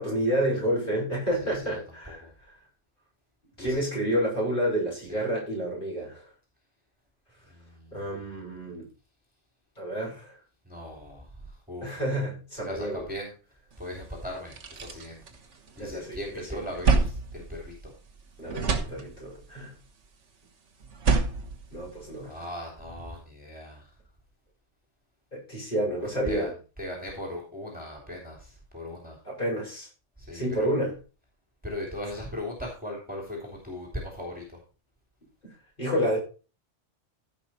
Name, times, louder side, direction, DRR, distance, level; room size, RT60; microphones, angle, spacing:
voice 1, 0.0-2.2 3.6-6.3 7.9-8.8 9.8-10.4 11.8-13.1 15.8-16.6 18.4-19.8 21.7-22.3 25.3-26.5 29.2-29.9 30.3-30.9 35.8-36.2, equal, 45° left, -4 dB, 6.8 m, -29 dB
voice 2, 1.4-1.8 2.1-2.3 3.6-3.8 5.1-5.2 7.6-8.1 10.7-11.3 11.7-12.0 12.6-13.3 13.8-14.5 14.8-15.2 15.8-17.9 22.3-23.8 25.8-26.5 26.8-29.2 30.2-30.7 31.6-34.6, left 1 dB, 5° right, -1 dB, 3.0 m, -38 dB
sound 1, 13.9-14.0 14.3-16.0 16.4-18.2 18.5-19.5 20.8-22.5, right 4 dB, 75° right, 1.7 m, -28 dB
15.5 x 5.6 x 4.3 m, 0.34 s
omnidirectional pair, 1.2 m